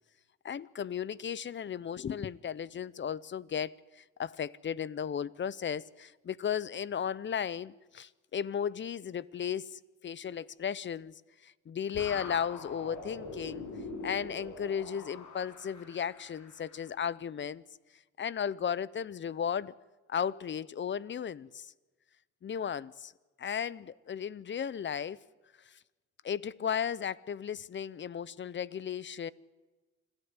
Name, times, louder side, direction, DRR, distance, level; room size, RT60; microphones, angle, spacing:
voice 1, 0.4-11.1 11.4-13.6 14.0-17.6 18.2-19.7 20.1-21.7 22.4-23.1 23.4-25.2 25.6-25.8 26.2-29.3, left 8 dB, 40° left, 0.7 m, -35 dB
sound 1, 11.9-17.0, left 3 dB, 75° left, 6.6 m, -44 dB
26.0 x 13.5 x 9.7 m
cardioid pair, 90°, 30 cm